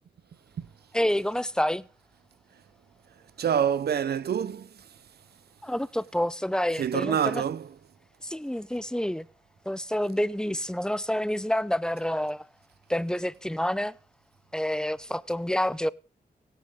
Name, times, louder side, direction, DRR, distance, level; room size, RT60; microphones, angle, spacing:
voice 1, 0.9-1.9 5.6-7.4 8.2-9.3 9.7-12.5 12.9-14.0 14.5-15.9, equal, 5° left, 0.5 m, -28 dB
voice 2, 3.4-4.7 6.8-7.7, right 8 dB, 70° right, 0.6 m, -26 dB
16.5 x 9.1 x 3.6 m
cardioid pair, 45°, 17 cm